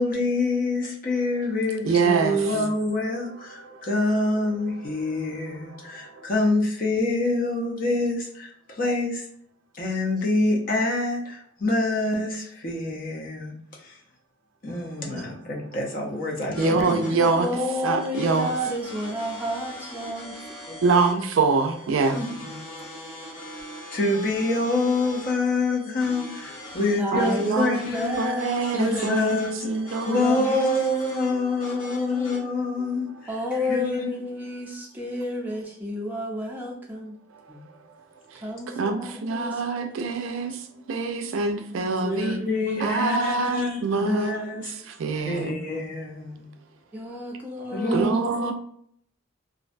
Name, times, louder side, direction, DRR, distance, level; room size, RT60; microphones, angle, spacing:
voice 1, 0.0-9.2 9.7-14.0 14.6-17.1 22.4-22.6 23.9-28.2 28.7-29.8 30.0-34.1 42.1-44.7 45.2-46.5 47.7-48.5, left 2 dB, 40° left, 0.5 m, -26 dB
voice 2, 1.8-2.4 3.6-3.9 5.5-6.3 14.8-15.0 16.6-17.5 17.8-18.5 20.8-22.2 22.8-24.0 27.1-27.7 28.2-30.4 31.3-31.4 31.9-32.0 32.3-32.4 32.8-33.2 37.3-38.0 38.3-42.4 42.8-45.6 47.9-48.5, right 4 dB, 70° right, 0.3 m, -26 dB
sound 1, 16.5-32.4, left 1 dB, 80° left, 1.0 m, -42 dB
voice 3, 17.1-20.8 22.1-22.4 25.9-26.0 27.0-29.1 30.1-30.9 31.8-32.4 33.3-37.1 37.5-37.6 38.4-40.2 41.2-41.3 41.7-43.1 44.1-44.2 45.2-45.7 46.9-48.5, left 1 dB, 10° right, 0.5 m, -31 dB
2.5 x 2.1 x 2.5 m
head